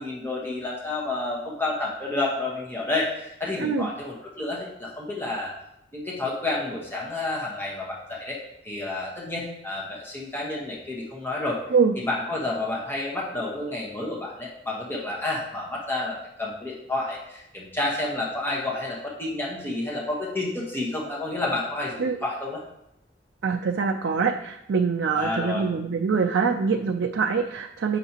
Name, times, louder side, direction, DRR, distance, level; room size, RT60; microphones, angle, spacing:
voice 1, 0.0-5.5 5.9-8.4 8.6-11.6 12.0-22.6 25.1-25.6, left 2 dB, 10° left, -4 dB, 1.1 m, -30 dB
voice 2, 3.6-3.9 11.7-11.9 22.0-22.2 23.4-28.0, right 5 dB, 90° right, 3 dB, 0.4 m, -24 dB
8.0 x 5.8 x 2.9 m, 0.83 s
head